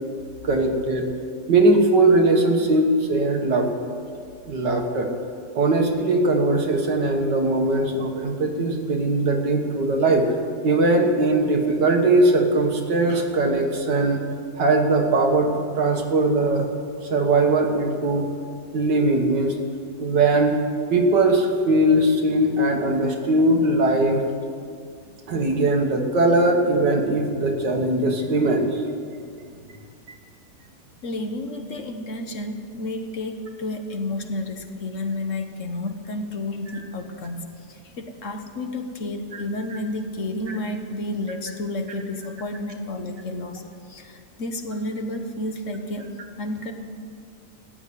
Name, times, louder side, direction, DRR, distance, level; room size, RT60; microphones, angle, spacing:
voice 1, 0.4-1.1 1.5-3.7 4.5-5.1 5.6-10.3 10.6-14.2 14.6-16.7 17.1-18.3 18.7-19.6 20.0-20.6 20.9-24.3 25.3-28.8 39.3-39.4, right 2 dB, 90° right, 3 dB, 2.2 m, -20 dB
voice 2, 31.0-46.1 46.4-46.7, left 1 dB, 50° left, 6 dB, 1.3 m, -31 dB
14.0 x 8.8 x 9.7 m, 2.3 s
omnidirectional pair, 1.8 m